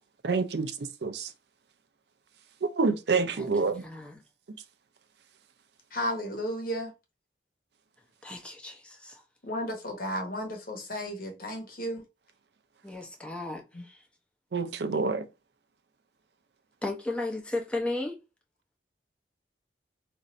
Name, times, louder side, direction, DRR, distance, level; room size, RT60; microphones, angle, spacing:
voice 1, 0.2-0.7 1.0-1.3 2.6-3.8 14.5-15.2, right 4 dB, 70° right, 0.5 m, -27 dB
voice 2, 3.4-4.2 8.2-9.2 12.8-14.0 16.8-18.2, left 2 dB, 5° left, 0.7 m, -35 dB
voice 3, 6.0-6.8 9.5-9.7 10.0-10.5 10.9-11.0 11.4-11.5 11.8-11.9, equal, 55° left, 1.0 m, -31 dB
2.6 x 2.5 x 4.2 m
head